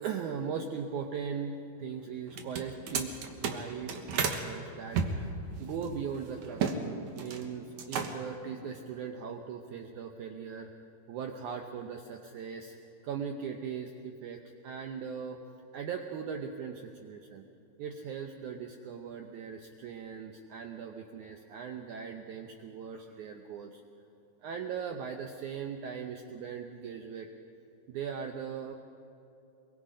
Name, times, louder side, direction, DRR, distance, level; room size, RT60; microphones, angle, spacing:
voice 1, 0.0-10.7 11.1-12.8 13.0-15.4 15.7-17.4 17.8-23.8 24.4-27.3 27.9-28.7, right 6 dB, 85° right, 4 dB, 1.7 m, -39 dB
sound 1, 2.3-4.4 4.9-6.8 7.1-7.5 7.8-8.4, right 6 dB, 60° right, 2.2 m, -33 dB
25.5 x 22.5 x 5.1 m, 2.7 s
omnidirectional pair, 4.7 m